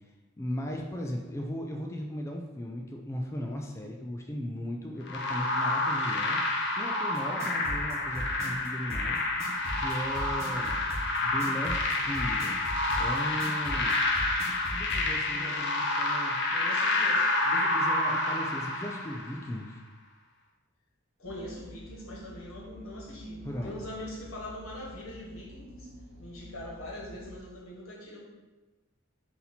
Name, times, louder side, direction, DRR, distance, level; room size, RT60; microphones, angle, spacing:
voice 1, 0.4-6.4 6.8-10.8 11.2-12.6 13.0-14.0 14.7-16.4 17.5-19.8 23.4-23.7, equal, 15° left, 1 dB, 0.3 m, -37 dB
sound 1, 5.1-19.4, left 2 dB, 55° left, 0.6 m, -29 dB
sound 2, 7.1-15.0, equal, 15° right, 1.2 m, -37 dB
voice 2, 15.3-15.8 16.5-17.3 21.2-25.9 26.2-28.2, left 1 dB, 85° left, -4 dB, 1.2 m, -42 dB
sound 3, 21.2-27.4, equal, 60° right, 0.7 m, -47 dB
4.1 x 2.8 x 4.1 m, 1.2 s
head